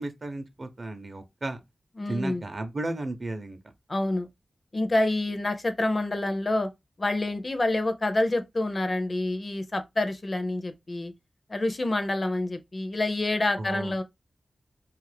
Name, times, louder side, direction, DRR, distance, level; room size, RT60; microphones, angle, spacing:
voice 1, 0.0-1.6 2.1-3.6 13.6-14.0, right 2 dB, 40° right, 0.6 m, -34 dB
voice 2, 2.0-2.4 3.9-4.3 4.7-6.7 7.0-11.1 11.5-14.0, left 2 dB, 35° left, 0.4 m, -27 dB
2.8 x 2.4 x 3.2 m
wide cardioid pair, 100°, 0 cm